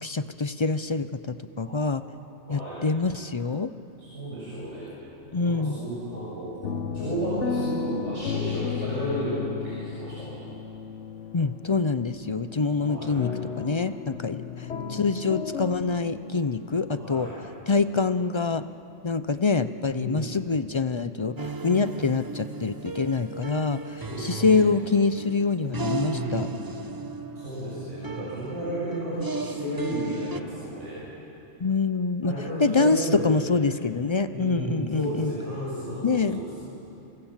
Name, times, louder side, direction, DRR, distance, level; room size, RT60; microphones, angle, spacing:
voice 1, 0.0-2.0 2.5-3.7 5.3-5.8 11.3-13.3 13.6-17.3 17.7-18.7 19.0-26.5 31.6-32.3 32.6-35.3 36.0-36.5, left 4 dB, 40° left, 12 dB, 0.4 m, -25 dB
voice 2, 2.4-2.8 4.0-4.9 5.3-6.5 6.9-9.3 9.6-10.4 12.8-13.2 17.0-17.4 19.9-20.4 24.0-24.6 25.9-26.8 27.3-31.0 32.2-33.6 34.3-36.6, right 1 dB, 75° right, -9 dB, 7.3 m, -33 dB
sound 1, 4.4-5.1 5.4-18.2, left 6 dB, 75° left, 1.2 m, -35 dB
sound 2, 21.4-30.4, right 3 dB, 25° right, 0.6 m, -36 dB
28.5 x 24.5 x 7.3 m, 2.9 s
omnidirectional pair, 1.2 m